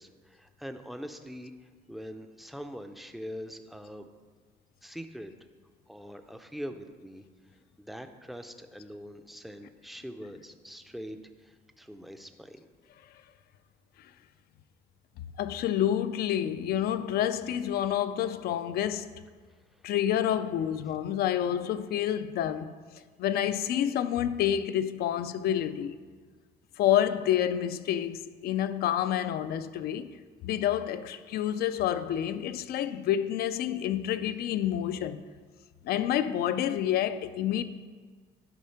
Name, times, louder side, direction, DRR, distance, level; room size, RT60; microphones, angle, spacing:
voice 1, 0.0-4.1 4.8-5.3 5.9-7.3 7.8-12.6, equal, ahead, 0.5 m, -43 dB
voice 2, 15.4-19.1 19.8-22.7 23.2-26.0 26.8-30.2 30.4-35.2 35.8-37.6, left 10 dB, 65° left, 0.4 m, -28 dB
11.0 x 3.7 x 5.7 m
cardioid pair, 110°, 17 cm